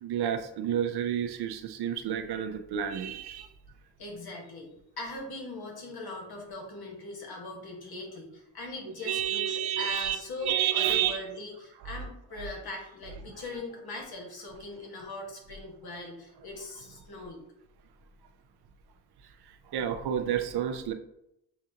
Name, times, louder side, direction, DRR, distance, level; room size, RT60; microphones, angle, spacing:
voice 1, 0.0-3.5 9.0-10.2 10.4-11.2 19.7-20.9, right 10 dB, 65° right, 7 dB, 0.6 m, -30 dB
voice 2, 4.0-17.4, left 2 dB, 60° left, -1 dB, 1.6 m, -40 dB
6.8 x 2.4 x 2.8 m, 0.80 s
supercardioid pair, 45°, 41 cm